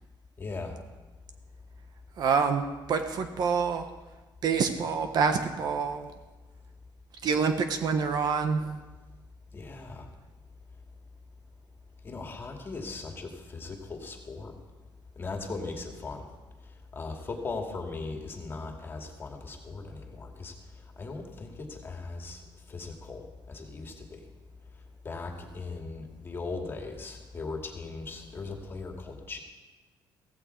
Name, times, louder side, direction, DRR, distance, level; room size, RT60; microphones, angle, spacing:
voice 1, 0.4-0.8 9.5-10.0 12.0-14.5 15.2-16.3 16.9-20.5 21.0-22.4 22.7-23.2 23.5-24.0 25.0-29.4, left 3 dB, 25° left, 2 dB, 2.3 m, -38 dB
voice 2, 2.2-3.8 4.4-6.1 7.2-8.8, right 5 dB, 55° right, 7 dB, 1.3 m, -27 dB
16.0 x 15.5 x 4.6 m, 1.2 s
cardioid pair, 135°, 8 cm